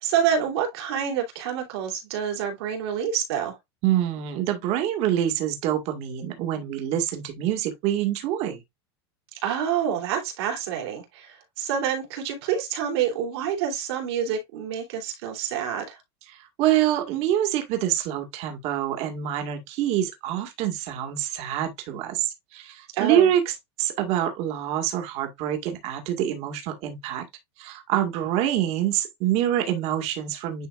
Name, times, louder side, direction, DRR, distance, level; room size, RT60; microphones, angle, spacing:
voice 1, 0.0-3.5 9.4-16.0 22.9-23.3, right 8 dB, 75° right, 3.2 m, -27 dB
voice 2, 3.8-8.6 16.3-27.2 27.6-30.7, right 11 dB, 50° right, 1.9 m, -26 dB
10.0 x 4.0 x 2.4 m
supercardioid pair, 135°, 14 cm